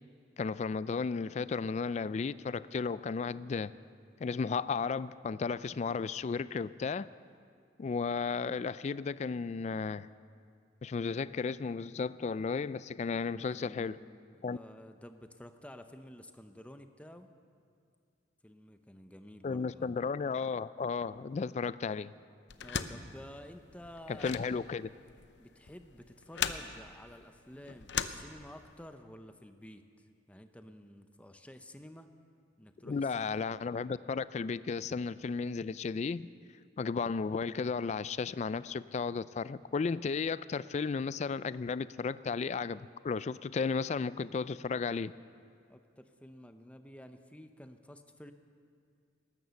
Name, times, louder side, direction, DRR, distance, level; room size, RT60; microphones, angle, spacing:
voice 1, 0.4-3.7 4.2-7.1 7.8-10.1 10.8-14.0 14.4-14.6 19.4-22.1 24.2-24.9 32.8-36.3 36.8-45.1, left 5 dB, 40° left, 17 dB, 0.3 m, -34 dB
voice 2, 13.5-17.3 18.4-20.0 22.5-24.5 25.4-29.9 30.3-32.1 32.6-33.3 45.7-48.3, left 1 dB, 5° left, 8 dB, 0.7 m, -51 dB
sound 1, 22.5-28.8, left 7 dB, 70° left, 0.7 m, -39 dB
19.0 x 11.0 x 7.0 m, 2.3 s
head